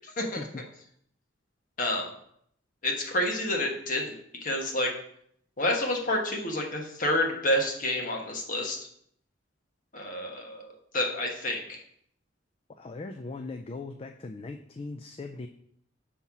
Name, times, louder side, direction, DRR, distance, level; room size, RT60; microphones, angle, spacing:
voice 1, 0.0-0.4 1.8-2.1 2.8-4.1 4.4-4.9 5.6-8.9 9.9-11.8, left 1 dB, 45° left, 1 dB, 1.3 m, -29 dB
voice 2, 12.8-15.5, left 3 dB, 30° left, 5 dB, 0.3 m, -39 dB
5.5 x 4.2 x 5.9 m, 0.69 s
head